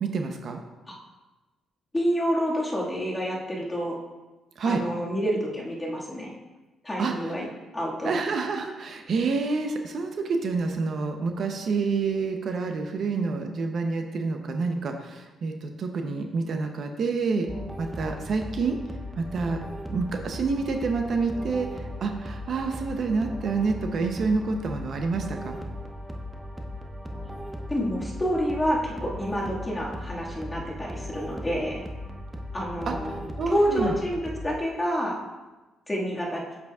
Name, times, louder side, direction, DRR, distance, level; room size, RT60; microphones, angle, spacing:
voice 1, 0.0-0.6 4.6-4.8 7.0-7.1 8.0-17.5 17.8-18.8 19.2-19.6 19.9-25.6 32.9-33.0 33.4-33.9, right 4 dB, 55° right, 4 dB, 0.7 m, -28 dB
voice 2, 1.9-4.0 4.7-6.3 6.8-7.5 7.7-8.1 27.7-31.8 32.5-33.2 33.5-35.2 35.9-36.4, equal, 15° left, -4 dB, 1.9 m, -28 dB
sound 1, 17.5-34.6, equal, 5° right, 0.7 m, -37 dB
8.0 x 6.7 x 2.4 m, 1.1 s
cardioid pair, 90°, 0 cm